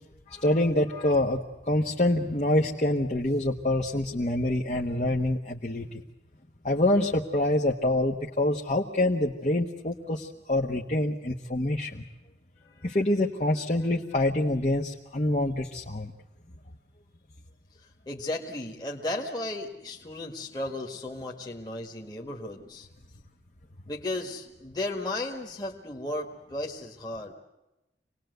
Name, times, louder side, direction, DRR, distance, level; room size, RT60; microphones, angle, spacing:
voice 1, 0.3-6.0 6.6-12.0 12.8-16.1, left 1 dB, 40° left, 1 dB, 1.2 m, -26 dB
voice 2, 18.1-22.9 23.9-27.3, left 2 dB, 25° left, 0 dB, 1.7 m, -35 dB
26.5 x 19.5 x 8.0 m, 0.98 s
head